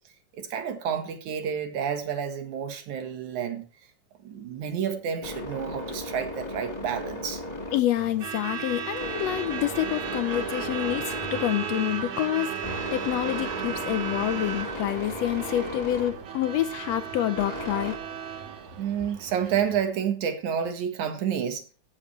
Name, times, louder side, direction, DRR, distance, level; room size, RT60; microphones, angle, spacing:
voice 1, 0.4-3.7 4.2-7.4 18.8-21.6, right 8 dB, 85° right, 2.9 m, -29 dB
sound 1, 4.3-18.0, left 1 dB, 15° left, 1.2 m, -38 dB
voice 2, 7.7-18.0, left 13 dB, 75° left, 1.7 m, -27 dB
Truck / Alarm, 8.0-19.9, right 8 dB, 65° right, 2.4 m, -35 dB
16.0 x 7.2 x 3.2 m
omnidirectional pair, 3.3 m